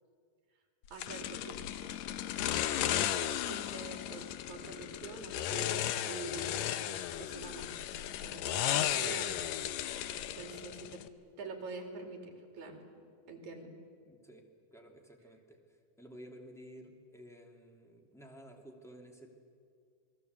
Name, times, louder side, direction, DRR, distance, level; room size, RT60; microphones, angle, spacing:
voice 1, 0.9-1.7 3.1-6.9 7.2-7.8 8.2-9.4 10.3-11.0 11.4-13.7, right 4 dB, 60° right, 4 dB, 4.2 m, -46 dB
sound 1, 1.0-11.1, left 12 dB, 75° left, 1.9 m, -35 dB
voice 2, 10.1-10.9 14.1-19.3, equal, ahead, 2 dB, 2.1 m, -54 dB
28.0 x 21.0 x 8.2 m, 2.2 s
omnidirectional pair, 3.7 m